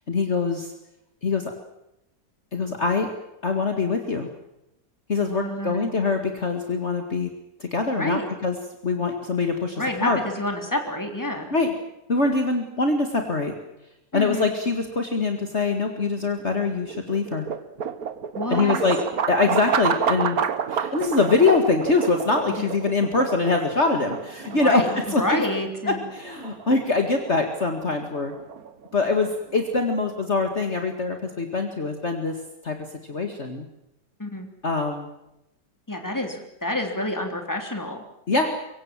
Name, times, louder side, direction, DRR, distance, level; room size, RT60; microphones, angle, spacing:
voice 1, 0.1-0.7 1.2-1.5 2.5-3.1 3.4-4.3 5.1-7.3 7.6-8.6 8.8-10.2 11.5-11.7 12.1-13.5 14.1-17.5 18.5-19.0 19.3-20.4 20.7-25.4 25.9-28.4 28.9-32.4 32.6-32.8 33.1-33.7 34.6-35.1 38.3-38.5, left 3 dB, 40° left, 4 dB, 2.3 m, -23 dB
voice 2, 5.2-5.9 7.9-8.2 9.8-11.5 14.1-14.5 18.3-18.8 22.5-22.7 24.5-26.0 34.2-34.5 35.9-38.0, left 1 dB, 10° left, 4 dB, 3.6 m, -28 dB
sound 1, 16.2-30.3, right 7 dB, 60° right, 1.6 m, -30 dB
24.5 x 23.5 x 7.6 m, 0.87 s
omnidirectional pair, 1.8 m